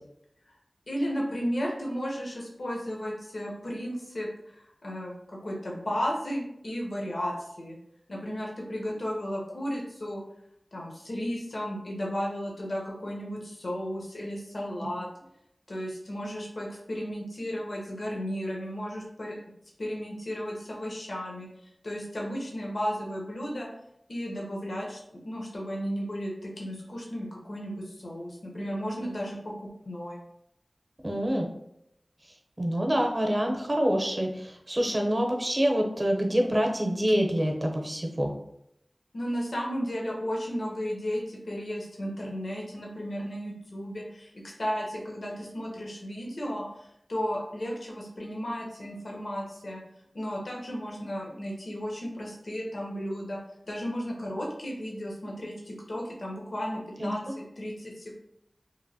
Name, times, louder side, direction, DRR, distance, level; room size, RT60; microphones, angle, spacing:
voice 1, 0.9-7.8 8.1-10.2 10.7-15.1 15.7-19.4 19.8-23.7 24.1-30.2 39.1-49.8 50.1-53.4 53.7-58.2, equal, 80° left, -2 dB, 0.6 m, -34 dB
voice 2, 31.0-31.5 32.6-38.3 57.0-57.1, equal, 40° right, 2 dB, 0.6 m, -26 dB
3.0 x 2.5 x 2.6 m, 0.79 s
wide cardioid pair, 40°, 0 cm